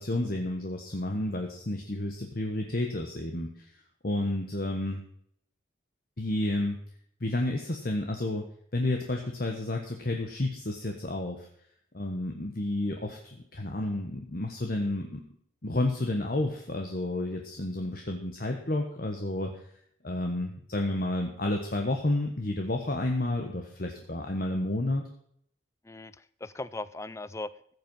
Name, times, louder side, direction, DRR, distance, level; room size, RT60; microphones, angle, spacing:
voice 1, 0.0-3.7 4.0-5.0 6.2-6.8 7.2-11.5 11.9-15.2 15.6-19.5 20.0-25.0, left 1 dB, 45° left, 3 dB, 1.3 m, -31 dB
voice 2, 25.8-27.7, left 2 dB, 15° left, 15 dB, 0.4 m, -39 dB
15.0 x 8.1 x 5.6 m, 0.67 s
head